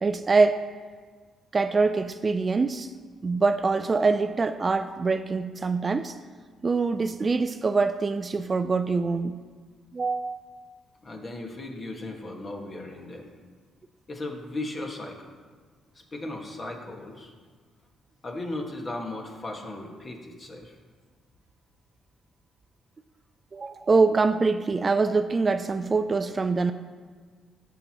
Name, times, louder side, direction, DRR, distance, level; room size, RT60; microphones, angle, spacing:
voice 1, 0.0-0.6 1.5-2.9 3.2-6.2 6.6-9.4 9.9-10.4 23.5-26.7, right 4 dB, 30° right, 10 dB, 0.3 m, -24 dB
voice 2, 11.0-13.3 14.1-15.3 16.1-17.3 18.2-20.8, left 2 dB, 35° left, 1 dB, 1.5 m, -36 dB
13.5 x 6.1 x 2.9 m, 1.5 s
cardioid pair, 90°, 0 cm